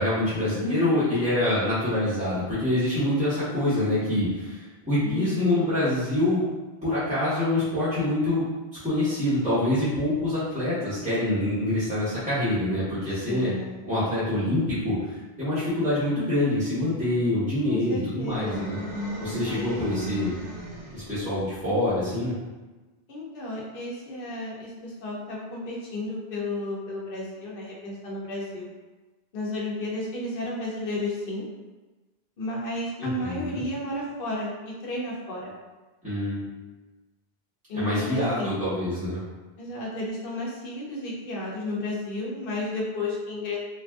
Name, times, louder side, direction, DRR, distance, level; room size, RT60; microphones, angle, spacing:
voice 1, 0.0-6.5 6.8-8.4 8.8-13.6 13.8-18.8 19.2-20.3 20.9-22.3 33.0-33.6 36.0-36.4 37.7-39.2, left 1 dB, 10° right, -14 dB, 0.9 m, -25 dB
voice 2, 5.0-5.7 13.3-13.8 17.7-18.7 19.4-19.9 23.1-28.7 29.3-31.4 32.4-35.5 37.7-38.5 39.6-43.6, left 1 dB, 65° left, -4 dB, 0.8 m, -33 dB
sound 1, 18.3-21.2, right 1 dB, 60° right, 1.0 m, -35 dB
3.2 x 2.5 x 2.3 m, 1.2 s
omnidirectional pair, 1.0 m